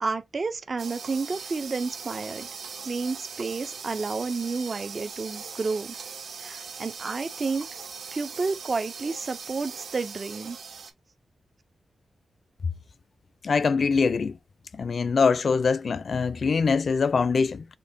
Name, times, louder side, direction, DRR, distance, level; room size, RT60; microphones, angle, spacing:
voice 1, 0.0-2.5 2.8-6.0 6.4-7.7 8.1-10.6, right 4 dB, 40° right, 0.4 m, -30 dB
sound 1, 0.8-10.9, right 5 dB, 80° right, 0.6 m, -40 dB
voice 2, 13.4-14.4 14.7-17.6, left 5 dB, 55° left, 0.3 m, -23 dB
5.1 x 2.1 x 2.6 m
wide cardioid pair, 105°, 0 cm